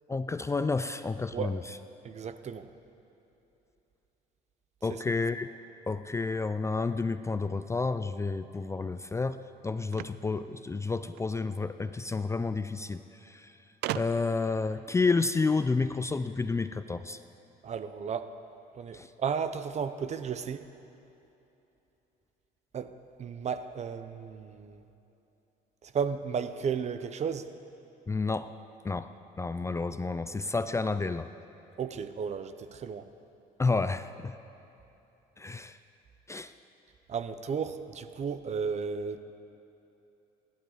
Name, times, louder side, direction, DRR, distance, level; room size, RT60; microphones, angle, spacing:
voice 1, 0.1-1.8 4.8-5.5 5.9-9.4 9.6-13.5 13.9-17.2 18.9-19.1 28.1-28.5 28.8-29.1 29.4-31.3 33.6-34.4 35.4-35.8 36.3-36.5, left 3 dB, 15° left, 11 dB, 0.4 m, -30 dB
voice 2, 2.0-2.7 4.9-5.0 17.6-18.3 18.8-20.6 22.7-22.9 23.2-24.8 25.9-27.5 31.8-33.1 37.1-39.2, right 6 dB, 40° right, 11 dB, 0.8 m, -34 dB
sound 1, 9.9-11.3 12.4-12.5 12.7-12.8 13.8-14.5, right 14 dB, 75° right, 0.4 m, -37 dB
29.5 x 12.0 x 4.0 m, 2.9 s
cardioid pair, 110°, 17 cm